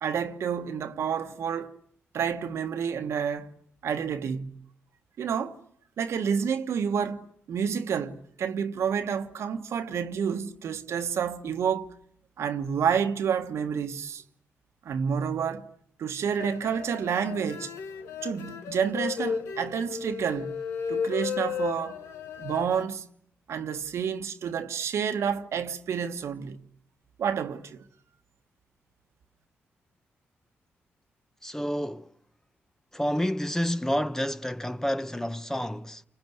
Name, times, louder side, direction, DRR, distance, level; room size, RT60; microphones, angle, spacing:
voice 1, 0.0-1.7 2.1-3.5 3.8-4.6 5.2-5.6 6.0-11.9 12.4-14.2 14.8-15.7 16.0-17.7 18.2-20.6 20.9-22.0 22.4-23.0 23.5-26.6 27.2-27.8, right 7 dB, 70° right, 1.4 m, -29 dB
sound 1, 16.4-22.8, left 7 dB, 85° left, 1.3 m, -34 dB
voice 2, 31.4-32.2 32.9-36.0, equal, 10° left, 1.1 m, -29 dB
29.0 x 25.0 x 8.0 m
supercardioid pair, 50°, 5 cm